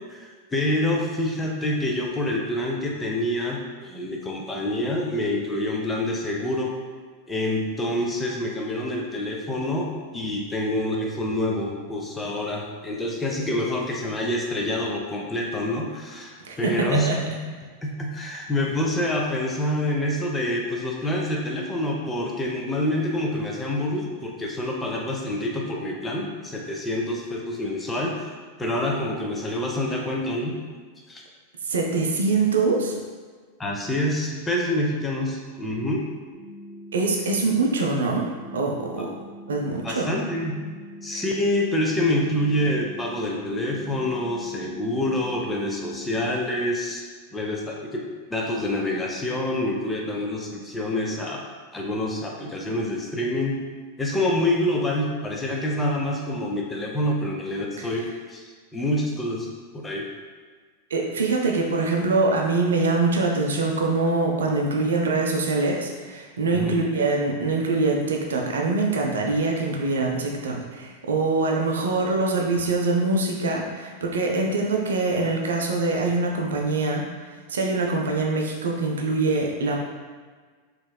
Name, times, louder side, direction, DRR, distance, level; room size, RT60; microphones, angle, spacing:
voice 1, 0.0-6.7 7.3-17.4 17.8-28.3 28.6-30.6 31.1-31.2 33.6-36.1 39.8-40.6 41.0-47.0 47.3-51.4 51.7-53.6 54.0-59.5 59.7-60.1 66.5-66.8, left 1 dB, 10° left, -1 dB, 0.5 m, -27 dB
voice 2, 16.5-17.2 31.6-32.9 36.9-38.3 38.5-39.1 39.5-40.1 41.1-41.2 60.9-77.0 77.5-79.8, right 3 dB, 65° right, 0 dB, 0.4 m, -24 dB
sound 1, 36.3-46.3, equal, 20° right, 1.4 m, -42 dB
4.0 x 3.0 x 2.2 m, 1.5 s
figure-of-eight pair, 90°, 0 cm